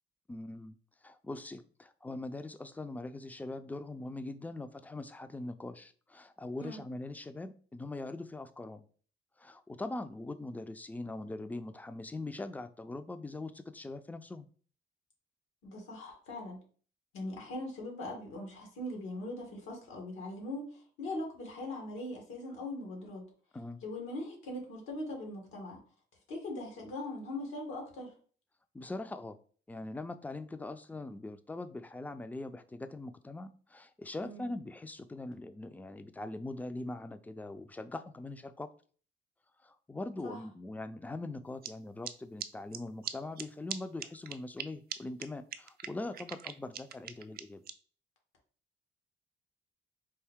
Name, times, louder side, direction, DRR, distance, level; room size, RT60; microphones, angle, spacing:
voice 1, 0.3-0.7 1.0-8.8 9.4-14.5 23.5-23.8 28.7-29.4 29.7-38.7 39.6-47.6, left 2 dB, 10° left, 11 dB, 0.3 m, -42 dB
voice 2, 15.6-16.6 17.1-23.2 23.8-25.8 26.3-28.1 34.2-34.5 40.2-40.4, left 1 dB, 90° left, 0 dB, 1.8 m, -41 dB
sound 1, 41.6-41.7 42.0-42.1 42.4-42.5 42.7-42.8 43.0-43.1 43.4-43.5 43.7-43.8 44.0-44.6 44.9-45.0 45.2-45.3 45.5-47.7, right 9 dB, 50° right, 0.4 m, -39 dB
4.5 x 2.6 x 3.5 m, 0.43 s
cardioid pair, 90°, 20 cm